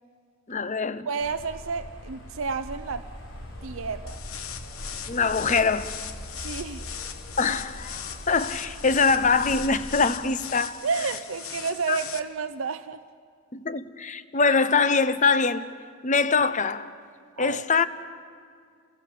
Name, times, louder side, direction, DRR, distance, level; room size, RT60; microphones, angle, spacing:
voice 1, 0.5-1.1 5.1-5.9 7.4-10.8 11.9-12.0 13.5-15.7 16.0-16.9 17.4-17.9, left 4 dB, 35° left, 0.8 m, -23 dB
voice 2, 1.1-3.1 3.6-4.2 6.4-6.9 10.8-13.0 17.4-17.7, right 5 dB, 75° right, 0.7 m, -31 dB
sound 1, 1.2-10.0, equal, 70° left, 4.0 m, -41 dB
sound 2, 4.1-12.2, left 8 dB, 90° left, 1.2 m, -39 dB
29.0 x 20.0 x 7.7 m
head